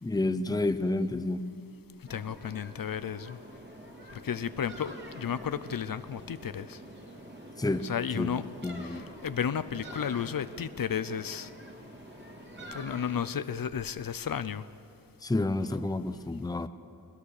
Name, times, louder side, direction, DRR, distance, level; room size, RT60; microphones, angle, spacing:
voice 1, 0.0-1.4 7.6-7.9 8.1-8.3 8.6-9.1 15.2-16.7, left 2 dB, 10° left, 11 dB, 0.6 m, -29 dB
voice 2, 2.1-3.4 4.1-6.8 7.8-8.5 8.8-11.5 12.7-14.6, left 8 dB, 60° left, 14 dB, 0.6 m, -33 dB
sound 1, 2.1-13.4, equal, 30° right, 2.6 m, -47 dB
21.5 x 21.5 x 6.6 m, 2.8 s
wide cardioid pair, 140°, 39 cm